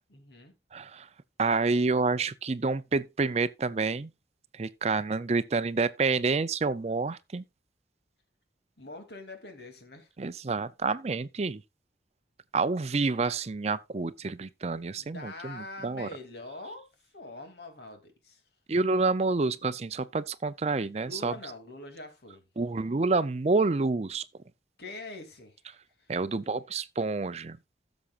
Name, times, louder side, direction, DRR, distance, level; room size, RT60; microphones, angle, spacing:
voice 1, 0.1-0.5 8.8-10.1 14.9-16.9 17.1-18.4 21.0-22.4 24.8-26.1, left 2 dB, 70° left, 2.7 m, -44 dB
voice 2, 0.7-1.1 1.4-4.1 4.5-7.4 10.2-11.6 12.5-16.1 18.7-21.3 22.6-24.2 26.1-27.6, right 3 dB, 35° right, 0.5 m, -28 dB
16.0 x 7.1 x 2.4 m
head